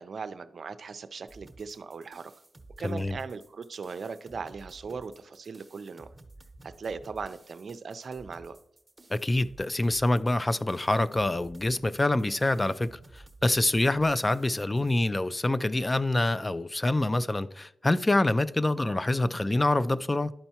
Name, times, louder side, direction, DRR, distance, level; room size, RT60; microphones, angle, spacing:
voice 1, 0.0-2.3 2.8-6.1 6.6-8.6, right 5 dB, 65° right, 0.4 m, -39 dB
sound 1, 1.3-15.0, right 2 dB, 25° right, 0.9 m, -53 dB
voice 2, 2.8-3.2 9.1-20.3, left 2 dB, 25° left, 0.3 m, -26 dB
11.5 x 4.4 x 2.8 m
cardioid pair, 60°, 0 cm